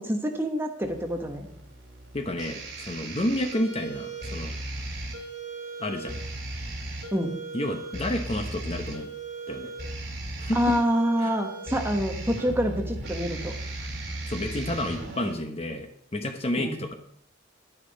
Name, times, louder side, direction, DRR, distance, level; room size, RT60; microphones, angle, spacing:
voice 1, 0.0-1.5 7.1-7.3 10.5-13.5 16.6-16.8, equal, 10° right, 3 dB, 1.1 m, -27 dB
sound 1, 0.8-15.3, right 2 dB, 60° right, 3.4 m, -37 dB
voice 2, 2.1-4.5 5.8-6.2 7.5-9.1 9.5-9.7 10.4-10.6 11.2-11.3 14.3-16.9, left 1 dB, 30° left, 5 dB, 1.0 m, -30 dB
10.5 x 9.9 x 4.1 m, 0.67 s
head